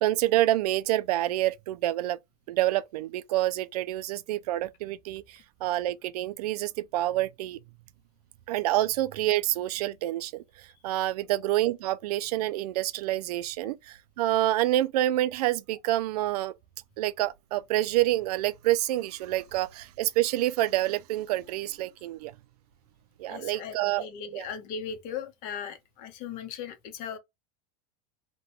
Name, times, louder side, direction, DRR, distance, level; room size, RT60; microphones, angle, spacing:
voice 1, 0.0-2.2 2.5-7.6 8.5-10.4 10.8-16.5 17.0-22.3 23.2-24.0 24.3-24.5, right 15 dB, 90° right, 0.4 m, -27 dB
voice 2, 23.3-27.2, left 7 dB, 45° left, 0.8 m, -38 dB
2.9 x 2.1 x 3.0 m
supercardioid pair, 155°, 19 cm